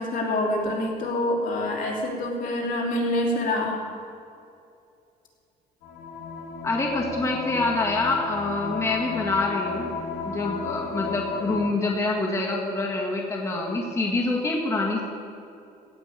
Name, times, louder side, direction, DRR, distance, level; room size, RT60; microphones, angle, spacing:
voice 1, 0.0-3.8, left 1 dB, 55° left, -1 dB, 3.1 m, -26 dB
sound 1, 5.8-11.7, left 4 dB, 85° left, 2.1 m, -34 dB
voice 2, 6.6-9.9 10.2-15.0, left 2 dB, 15° left, -1 dB, 1.7 m, -26 dB
16.5 x 6.0 x 8.6 m, 2.5 s
cardioid pair, 110°, 17 cm